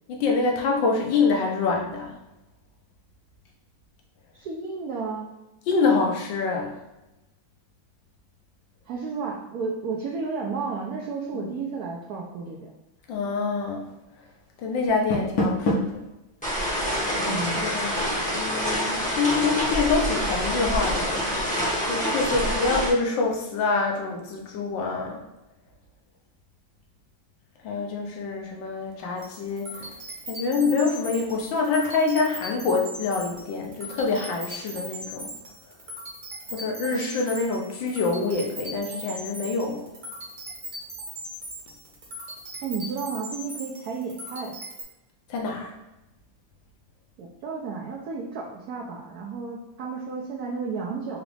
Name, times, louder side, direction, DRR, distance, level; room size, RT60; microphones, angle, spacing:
voice 1, 0.1-2.2 5.7-6.8 11.3-11.5 13.1-13.9 14.6-16.0 17.1-21.6 21.9-25.2 27.6-29.9 30.3-35.3 36.5-39.9 45.3-45.7, left 4 dB, 75° left, 1 dB, 1.5 m, -26 dB
voice 2, 4.3-5.3 8.9-12.7 17.3-17.6 42.6-44.6 47.2-51.2, right 5 dB, 70° right, -2 dB, 0.9 m, -32 dB
Door, 14.8-16.1, left 1 dB, 60° left, 1.2 m, -26 dB
sound 1, 16.4-22.9, equal, 5° left, 0.6 m, -26 dB
sound 2, 29.2-44.8, right 1 dB, 35° right, 0.9 m, -39 dB
5.0 x 2.4 x 3.2 m, 0.98 s
omnidirectional pair, 2.1 m